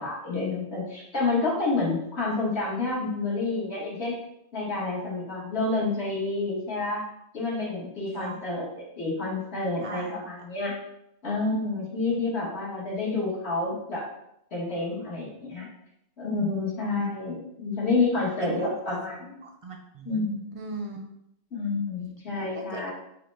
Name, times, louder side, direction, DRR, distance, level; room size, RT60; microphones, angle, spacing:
voice 1, 0.0-4.2 4.5-7.0 7.3-10.7 11.2-14.0 14.5-15.7 16.2-19.4 20.0-20.5 21.5-22.9, left 3 dB, 70° left, -5 dB, 1.5 m, -29 dB
voice 2, 9.8-10.1 12.1-12.2 17.0-17.1 18.4-19.0 19.4-21.0 22.5-22.9, right 3 dB, 55° right, 2 dB, 0.3 m, -39 dB
5.7 x 2.1 x 3.2 m, 0.78 s
omnidirectional pair, 1.1 m